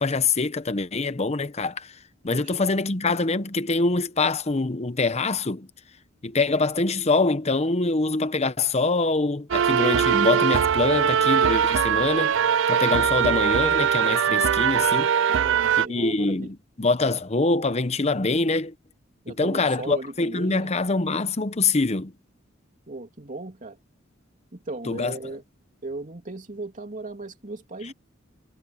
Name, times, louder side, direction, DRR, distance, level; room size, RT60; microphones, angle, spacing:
voice 1, 0.0-1.9 2.2-5.7 6.2-12.4 12.7-15.1 15.9-18.7 19.3-22.1 24.9-25.1, left 3 dB, 35° left, 0.9 m, -24 dB
sound 1, 9.5-15.9, right 8 dB, 65° right, 0.4 m, -21 dB
voice 2, 10.8-11.3 15.3-16.5 19.2-20.7 22.9-23.8 24.5-25.4 25.8-27.9, right 2 dB, 40° right, 2.9 m, -37 dB
head